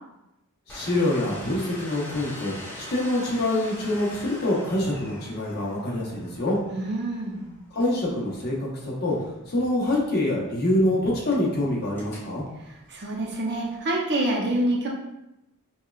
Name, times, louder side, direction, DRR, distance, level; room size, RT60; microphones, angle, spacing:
voice 1, 0.7-6.6 7.7-12.4, left 1 dB, 50° left, -4 dB, 0.9 m, -25 dB
Domestic sounds home sounds, 0.7-13.8, left 1 dB, 10° left, 0.6 m, -44 dB
voice 2, 6.7-7.4 12.9-14.9, right 1 dB, 50° right, -1 dB, 0.7 m, -26 dB
5.4 x 2.3 x 2.3 m, 0.91 s
head